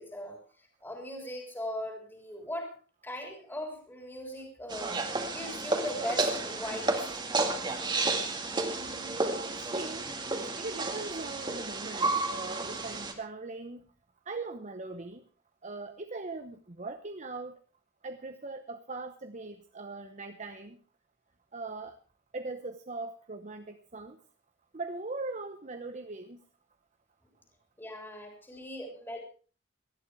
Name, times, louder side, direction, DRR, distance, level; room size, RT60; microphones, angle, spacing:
voice 1, 0.0-2.7 3.0-4.9 5.3-7.2 27.8-29.2, left 1 dB, 10° left, 2 dB, 3.5 m, -39 dB
sound 1, 4.7-13.1, right 3 dB, 25° right, 2.2 m, -32 dB
voice 2, 8.7-10.1 10.6-13.8 14.3-15.2 15.6-17.6 18.0-20.8 21.5-22.0 22.3-24.2 24.7-26.4, right 3 dB, 40° right, 7 dB, 0.9 m, -40 dB
18.5 x 12.5 x 4.8 m, 0.39 s
head